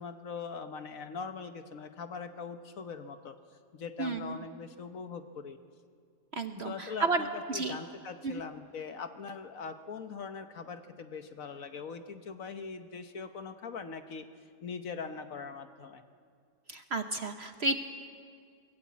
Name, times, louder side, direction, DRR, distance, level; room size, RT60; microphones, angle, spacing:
voice 1, 0.0-3.4 3.7-5.6 6.6-14.3 14.6-16.0, left 5 dB, 55° left, 8 dB, 1.3 m, -41 dB
voice 2, 4.0-4.4 6.3-7.8 8.2-8.4 16.7-17.8, right 3 dB, 50° right, 7 dB, 0.9 m, -32 dB
24.0 x 19.0 x 8.4 m, 2.2 s
omnidirectional pair, 1.8 m